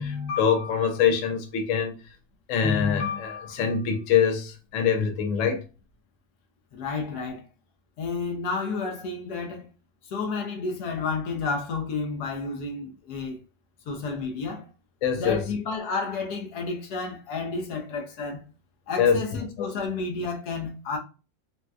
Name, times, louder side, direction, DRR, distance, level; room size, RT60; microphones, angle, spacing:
voice 1, 0.0-1.9 2.5-5.6 15.0-15.5 19.0-19.2 19.6-19.7, left 7 dB, 80° left, 0.7 m, -24 dB
voice 2, 6.7-7.4 8.0-9.7 10.1-13.4 13.9-14.7 15.2-18.4 18.9-21.0, left 4 dB, 65° left, 1.1 m, -31 dB
4.0 x 2.2 x 2.3 m
omnidirectional pair, 2.0 m